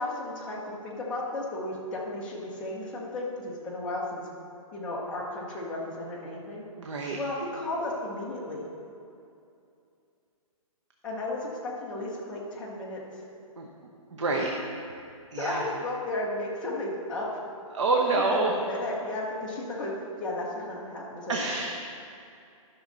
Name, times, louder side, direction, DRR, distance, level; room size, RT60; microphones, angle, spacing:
voice 1, 0.0-4.2 4.7-6.6 7.1-8.6 11.0-13.0 15.4-17.3 18.1-19.9 20.2-21.3, left 2 dB, 5° left, -7 dB, 0.7 m, -34 dB
voice 2, 6.8-7.2 13.6-13.7 14.1-14.5 15.3-15.6 17.7-18.5 21.3-21.7, right 3 dB, 55° right, 0 dB, 0.9 m, -27 dB
12.0 x 6.2 x 3.9 m, 2.6 s
hypercardioid pair, 175°, 18 cm